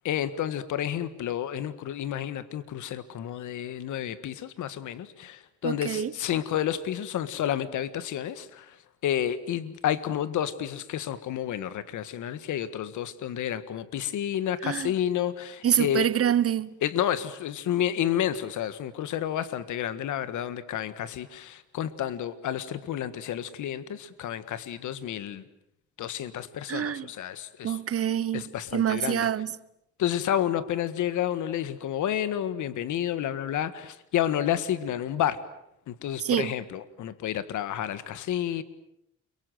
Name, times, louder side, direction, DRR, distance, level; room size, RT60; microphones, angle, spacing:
voice 1, 0.0-8.8 9.0-16.1 16.8-25.4 26.0-27.8 28.3-29.3 30.0-35.4 35.9-38.6, left 10 dB, 80° left, 1.7 m, -30 dB
voice 2, 5.6-6.1 14.6-14.9 15.6-16.7 26.7-27.1 27.6-29.5 36.2-36.5, right 9 dB, 50° right, 1.2 m, -26 dB
29.5 x 23.5 x 7.9 m
cardioid pair, 90°, 30 cm